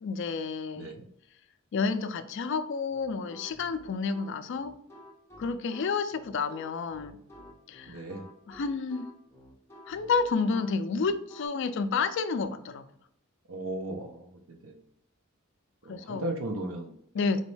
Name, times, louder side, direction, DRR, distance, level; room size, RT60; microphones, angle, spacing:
voice 1, 0.0-0.9 1.7-4.7 5.4-7.2 7.7-8.0 8.5-9.1 9.9-12.9 15.9-16.3 17.1-17.4, left 4 dB, 60° left, 10 dB, 0.4 m, -30 dB
sound 1, 2.9-11.5, equal, 10° left, 0.7 m, -51 dB
voice 2, 7.9-8.2 13.5-14.3 14.6-14.8 15.8-17.3, right 1 dB, 70° right, 3 dB, 0.6 m, -36 dB
4.1 x 3.0 x 3.2 m, 0.73 s
head